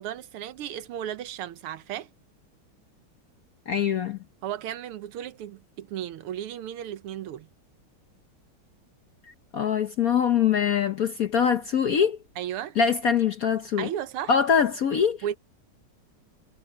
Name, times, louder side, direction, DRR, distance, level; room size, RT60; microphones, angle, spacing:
voice 1, 0.0-2.1 4.4-7.5 12.4-12.8 13.8-14.4 15.2-15.4, right 11 dB, 85° right, 1.8 m, -34 dB
voice 2, 3.7-4.2 9.3-12.2 12.8-13.9 14.3-15.2, left 7 dB, 60° left, 0.9 m, -23 dB
omnidirectional pair, 2.4 m